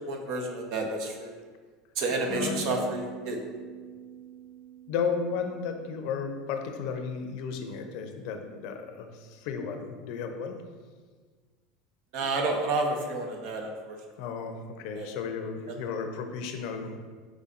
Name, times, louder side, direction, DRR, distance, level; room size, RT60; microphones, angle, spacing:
voice 1, 0.1-1.3 2.0-3.4 12.1-14.0 14.9-15.1, right 2 dB, 65° right, 2 dB, 0.8 m, -30 dB
voice 2, 2.2-2.7 4.9-10.6 14.2-17.0, left 5 dB, 65° left, 6 dB, 0.5 m, -34 dB
sound 1, 2.3-6.6, equal, 15° left, 0.7 m, -42 dB
5.0 x 4.0 x 2.5 m, 1.5 s
hypercardioid pair, 100°, 0 cm